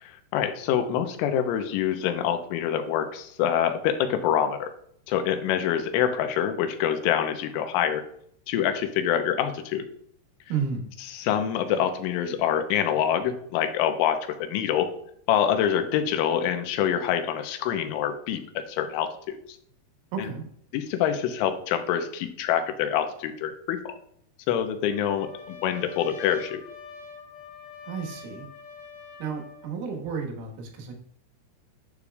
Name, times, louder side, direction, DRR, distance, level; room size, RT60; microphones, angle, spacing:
voice 1, 0.0-4.7 5.1-8.0 8.5-9.8 11.1-14.9 15.3-18.4 18.7-19.4 20.2-20.3 20.7-23.9 24.5-26.6, left 9 dB, 90° left, 7 dB, 3.3 m, -26 dB
voice 2, 10.5-10.9 20.1-20.4 27.8-28.5 29.2-30.9, right 6 dB, 85° right, 1 dB, 4.0 m, -32 dB
Trumpet, 24.9-29.7, left 5 dB, 70° left, 3.8 m, -44 dB
11.5 x 7.0 x 2.3 m, 0.66 s
omnidirectional pair, 5.6 m